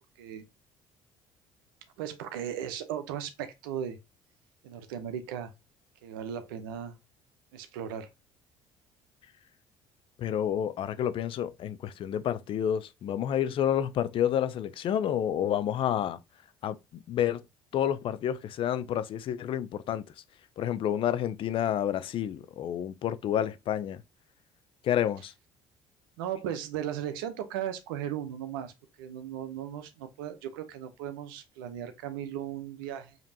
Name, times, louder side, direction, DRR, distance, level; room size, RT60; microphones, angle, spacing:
voice 1, 2.0-4.0 4.6-5.5 6.0-7.0 7.5-8.1 26.2-28.7 29.0-33.2, right 10 dB, 90° right, 0.7 m, -36 dB
voice 2, 10.2-16.2 16.6-16.8 17.1-17.4 17.7-20.0 20.6-24.0 24.8-25.3, left 10 dB, 55° left, 0.5 m, -29 dB
5.1 x 2.9 x 2.7 m
supercardioid pair, 75°, 11 cm